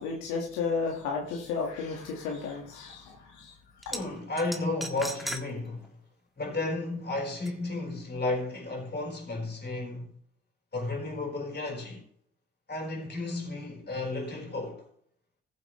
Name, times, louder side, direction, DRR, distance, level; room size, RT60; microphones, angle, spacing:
voice 1, 0.0-3.9, left 5 dB, 90° left, 1.8 m, -33 dB
sound 1, 3.8-4.0 4.4-5.4 5.8-5.9 7.5-7.6, equal, ahead, 1.7 m, -36 dB
voice 2, 3.9-5.9 6.4-10.1 10.7-12.0 12.7-14.8, left 2 dB, 35° left, 4.4 m, -33 dB
14.5 x 7.6 x 3.2 m
supercardioid pair, 55°, 29 cm